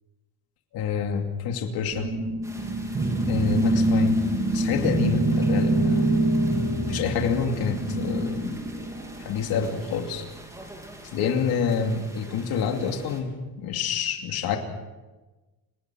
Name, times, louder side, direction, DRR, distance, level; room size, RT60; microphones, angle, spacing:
voice 1, 0.7-2.1 3.3-4.2 4.5-6.0 6.9-8.7 9.2-10.2 11.1-13.3 13.6-14.6, left 6 dB, 75° left, 4 dB, 2.7 m, -27 dB
sound 1, 1.9-9.7, right 1 dB, 25° right, 1.9 m, -25 dB
sound 2, 2.4-13.2, right 1 dB, 10° right, 3.6 m, -47 dB
29.5 x 19.0 x 6.2 m, 1.2 s
cardioid pair, 165°, 37 cm